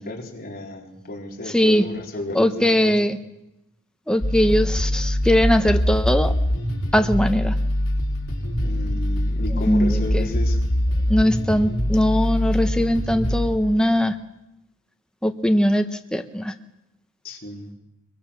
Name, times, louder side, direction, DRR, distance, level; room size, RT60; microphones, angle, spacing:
voice 1, 0.0-2.9 8.5-10.6 17.2-17.7, left 1 dB, 45° left, 0 dB, 4.0 m, -33 dB
voice 2, 1.4-1.8 2.3-3.2 4.1-6.3 6.9-7.5 9.5-10.3 11.1-14.2 15.2-16.5, equal, 5° left, 6 dB, 0.9 m, -20 dB
sound 1, 4.2-13.5, left 1 dB, 65° left, 4.2 m, -23 dB
23.5 x 23.0 x 7.2 m, 0.90 s
head